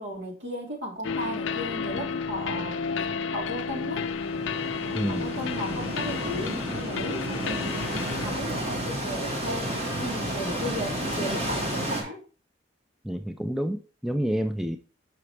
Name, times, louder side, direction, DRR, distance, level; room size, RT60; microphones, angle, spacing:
voice 1, 0.0-2.8 3.3-4.1 5.1-12.2, equal, 70° right, 2.4 m, -35 dB
sound 1, 1.0-8.4, left 5 dB, 75° left, 0.5 m, -32 dB
sound 2, 3.8-12.0, right 1 dB, 30° right, 1.7 m, -32 dB
voice 2, 4.9-5.4 13.0-14.8, equal, ahead, 0.3 m, -29 dB
6.2 x 5.9 x 3.2 m
head